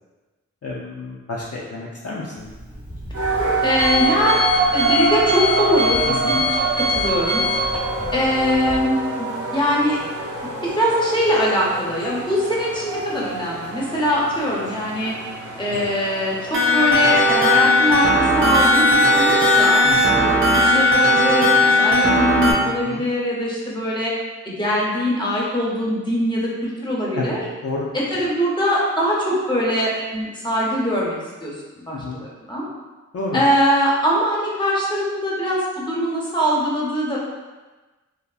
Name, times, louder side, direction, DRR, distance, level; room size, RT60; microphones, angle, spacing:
voice 1, 0.6-2.5 6.1-6.4 15.7-15.8 19.8-20.2 22.6-23.0 27.1-27.3 27.6-27.9 31.9-32.2 33.1-33.4, left 3 dB, 55° left, -5 dB, 0.4 m, -30 dB
Alarm, 2.4-8.8, left 1 dB, 15° right, 0.8 m, -25 dB
sound 1, 3.1-18.0, right 3 dB, 85° right, 0.7 m, -26 dB
voice 2, 3.6-6.4 6.9-7.4 8.1-10.0 10.6-15.1 15.6-24.1 24.4-27.4 27.9-31.1 31.4-32.6 33.3-37.2, equal, 15° left, -5 dB, 0.8 m, -22 dB
sound 2, 16.5-22.5, left 1 dB, 45° right, 0.5 m, -16 dB
3.4 x 2.0 x 2.3 m, 1.2 s
wide cardioid pair, 40°, 29 cm